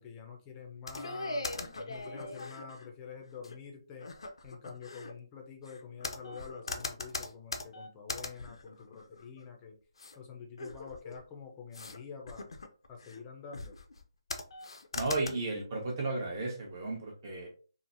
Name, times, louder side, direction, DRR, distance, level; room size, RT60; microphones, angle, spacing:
voice 1, 0.0-4.2 4.4-9.8 10.2-12.5 12.9-13.8, left 6 dB, 20° left, 2 dB, 0.5 m, -47 dB
sound 1, 0.9-2.9 3.4-3.5 4.0-5.1 5.6-9.4 10.0-10.2 10.6-11.2 11.7-12.0 12.3-13.2 13.5-14.0 14.3-15.3, left 2 dB, 75° left, 0.4 m, -40 dB
voice 2, 14.9-17.5, right 2 dB, 35° right, -1 dB, 1.0 m, -34 dB
3.1 x 2.0 x 2.5 m, 0.37 s
figure-of-eight pair, 155°, 3 cm